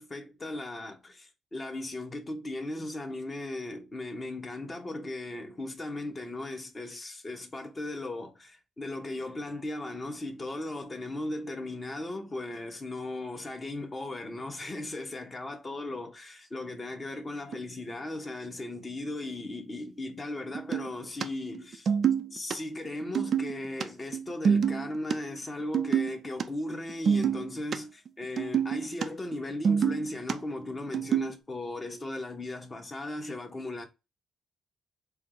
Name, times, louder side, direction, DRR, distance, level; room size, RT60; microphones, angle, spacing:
voice 1, 0.0-21.9 22.3-33.9, left 2 dB, 25° left, 1.0 m, -37 dB
sound 1, 17.5-17.6 20.5-21.2 21.5-22.6 22.8-23.8 24.1-25.2 25.6-26.4 26.7-27.8 28.1-29.1 29.3-30.3 30.9-31.3, right 7 dB, 55° right, 0.4 m, -27 dB
4.4 x 2.0 x 3.7 m
cardioid pair, 90°, 0 cm